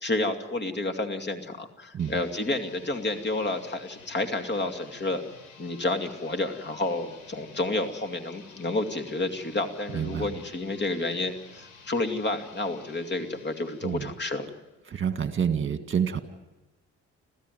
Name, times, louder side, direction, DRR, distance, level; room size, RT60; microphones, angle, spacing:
voice 1, 0.0-5.2 5.6-14.5, left 2 dB, 35° left, 7 dB, 2.5 m, -30 dB
sound 1, 1.9-14.7, left 5 dB, 85° left, 5.5 m, -52 dB
voice 2, 9.9-10.3 13.8-14.1 14.9-16.2, right 7 dB, 40° right, 8 dB, 2.0 m, -28 dB
26.5 x 15.5 x 9.4 m, 1.1 s
cardioid pair, 90°, 30 cm